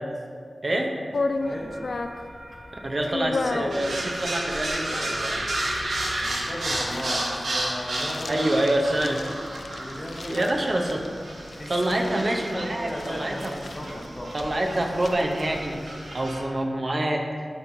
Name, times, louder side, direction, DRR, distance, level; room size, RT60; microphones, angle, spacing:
voice 1, 0.6-0.9 2.8-5.4 8.3-9.2 10.3-11.1 11.7-13.5 14.3-15.8 16.1-17.3, right 1 dB, 50° right, 1 dB, 0.7 m, -26 dB
sound 1, 1.1-15.9, left 3 dB, 70° left, 0.3 m, -35 dB
voice 2, 1.4-1.8 6.2-9.3 9.8-10.5 11.6-14.3, equal, 30° left, -1 dB, 1.0 m, -36 dB
sound 2, 1.4-6.8, equal, ahead, 0.9 m, -44 dB
sound 3, 3.7-16.4, right 1 dB, 90° right, 1.0 m, -32 dB
10.5 x 4.4 x 2.7 m, 2.1 s
wide cardioid pair, 65°, 0 cm